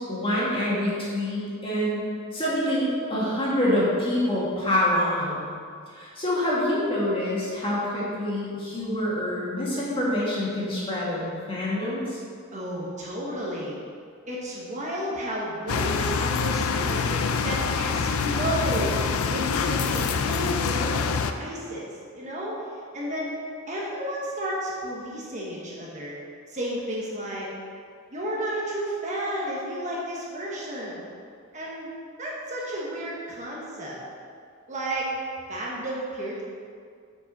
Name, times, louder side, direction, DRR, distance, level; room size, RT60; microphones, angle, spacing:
voice 1, 0.1-5.4 5.9-12.2, left 1 dB, 25° left, -7 dB, 2.1 m, -26 dB
voice 2, 12.5-13.8 14.3-22.6 22.9-26.2 26.5-27.5 28.1-31.0 31.5-31.9 32.2-34.0 34.7-35.1 35.5-36.4, right 1 dB, 35° right, -5 dB, 1.3 m, -32 dB
sound 1, 15.7-21.3, left 5 dB, 85° left, 0.5 m, -25 dB
7.3 x 5.3 x 5.4 m, 2.2 s
head